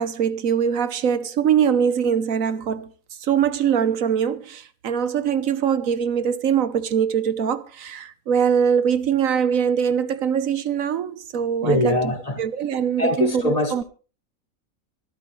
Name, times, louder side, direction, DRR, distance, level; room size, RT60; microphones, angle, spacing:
voice 1, 0.0-2.9 3.2-12.0 12.4-13.8, right 8 dB, 75° right, 1.3 m, -22 dB
voice 2, 11.6-12.4 13.0-13.8, left 1 dB, 25° left, 1.9 m, -22 dB
25.0 x 9.2 x 3.2 m
omnidirectional pair, 1.4 m